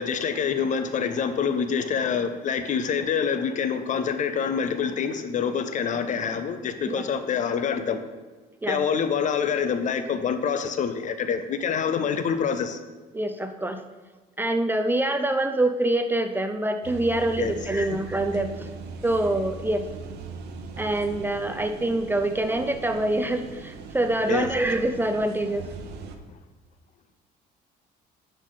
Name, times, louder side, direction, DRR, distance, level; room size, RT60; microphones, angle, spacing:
voice 1, 0.0-8.0 8.7-12.8 17.4-17.8 24.3-24.5, left 6 dB, 50° left, 9 dB, 0.7 m, -26 dB
voice 2, 13.1-13.8 14.4-18.7 19.0-19.9 20.8-25.7, right 1 dB, 10° right, 7 dB, 0.5 m, -25 dB
sound 1, 16.8-26.2, right 5 dB, 75° right, 0.8 m, -40 dB
11.0 x 4.1 x 4.0 m, 1.3 s
cardioid pair, 110°, 17 cm